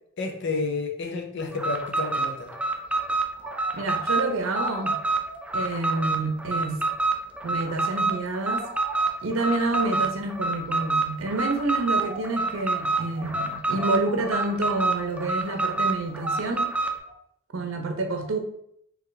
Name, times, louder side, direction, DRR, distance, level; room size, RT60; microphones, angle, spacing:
voice 1, 0.2-2.5, left 3 dB, 60° left, 0.6 m, -30 dB
Alarm, 1.5-17.0, right 3 dB, 5° right, 0.3 m, -27 dB
sound 1, 2.8-17.1, right 2 dB, 25° right, 0.8 m, -46 dB
voice 2, 3.7-5.0 5.5-6.8 7.4-8.7 9.2-16.8 17.5-18.4, right 2 dB, 80° right, 0.6 m, -28 dB
3.8 x 3.0 x 3.2 m
head